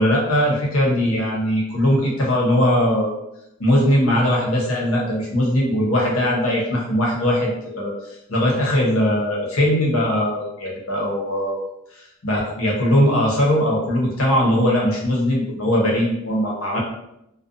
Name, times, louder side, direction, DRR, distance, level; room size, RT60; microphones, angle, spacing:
voice 1, 0.0-3.2 3.6-7.9 8.3-11.6 12.2-16.8, equal, 90° left, -3 dB, 0.8 m, -20 dB
2.5 x 2.2 x 2.5 m, 0.83 s
head